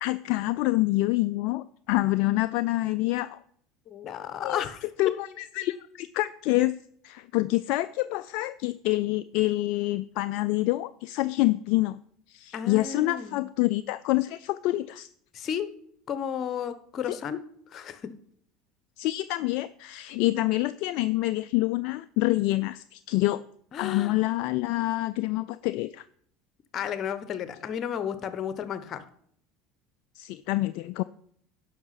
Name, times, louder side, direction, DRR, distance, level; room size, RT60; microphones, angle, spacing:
voice 1, 0.0-3.4 4.4-4.6 5.0-6.7 7.0-12.0 12.3-15.1 17.1-17.2 19.0-23.4 23.8-26.0 30.1-31.0, left 18 dB, 65° left, 13 dB, 0.3 m, -27 dB
voice 2, 3.9-4.8 12.5-13.4 15.3-15.7 16.1-17.4 17.7-18.0 23.7-24.1 26.7-29.0, left 8 dB, 45° left, 13 dB, 1.1 m, -33 dB
10.5 x 5.7 x 5.8 m, 0.64 s
hypercardioid pair, 75°, 0 cm